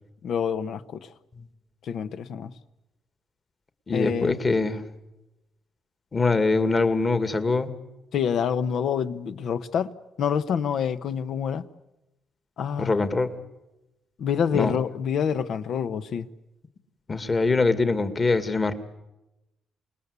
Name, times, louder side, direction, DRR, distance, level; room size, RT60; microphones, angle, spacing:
voice 1, 0.2-1.1 1.8-2.5 3.9-4.4 8.1-9.9 10.2-11.6 12.6-13.0 14.2-16.3, left 7 dB, 70° left, 1.1 m, -27 dB
voice 2, 3.9-4.8 6.1-7.7 12.8-13.3 14.5-14.7 17.1-18.7, left 3 dB, 30° left, 2.1 m, -23 dB
28.0 x 19.5 x 8.3 m
cardioid pair, 90°, 0 cm